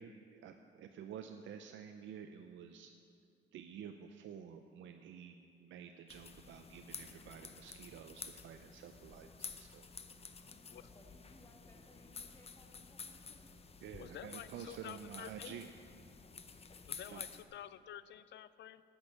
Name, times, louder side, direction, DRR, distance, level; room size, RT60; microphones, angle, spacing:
voice 1, 0.0-2.9 3.5-9.9 13.8-15.7 17.1-17.2, right 8 dB, 70° right, 6 dB, 0.6 m, -50 dB
sound 1, 6.1-17.4, left 5 dB, 30° left, 0.7 m, -51 dB
voice 2, 10.4-13.5, left 1 dB, 15° left, 0 dB, 1.8 m, -64 dB
voice 3, 14.0-15.6 16.9-18.8, left 11 dB, 65° left, 15 dB, 0.4 m, -50 dB
10.5 x 6.3 x 8.4 m, 2.5 s
cardioid pair, 90°, 20 cm